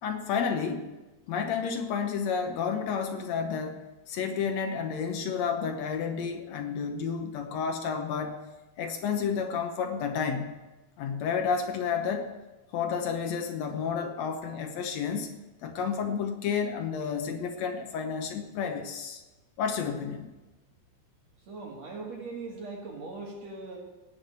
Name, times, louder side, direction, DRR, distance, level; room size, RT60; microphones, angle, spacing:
voice 1, 0.0-0.9 1.3-3.8 4.1-8.4 8.8-10.6 11.0-12.3 12.7-15.3 15.6-19.2 19.6-20.3, left 6 dB, 70° left, 5 dB, 1.6 m, -31 dB
voice 2, 21.5-23.8, right 3 dB, 45° right, 0 dB, 3.0 m, -40 dB
18.0 x 6.4 x 9.0 m, 1.1 s
omnidirectional pair, 4.5 m